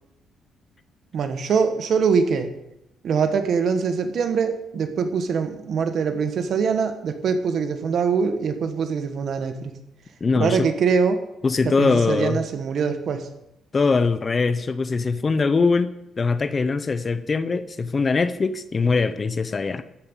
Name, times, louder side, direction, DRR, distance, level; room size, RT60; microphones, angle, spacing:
voice 1, 1.1-2.5 3.0-9.7 10.4-11.2 11.6-13.3, right 5 dB, 60° right, 8 dB, 1.6 m, -23 dB
voice 2, 10.2-10.7 11.4-12.4 13.7-19.8, left 4 dB, 35° left, 14 dB, 0.7 m, -22 dB
13.5 x 5.4 x 8.3 m, 0.84 s
cardioid pair, 90°, 0 cm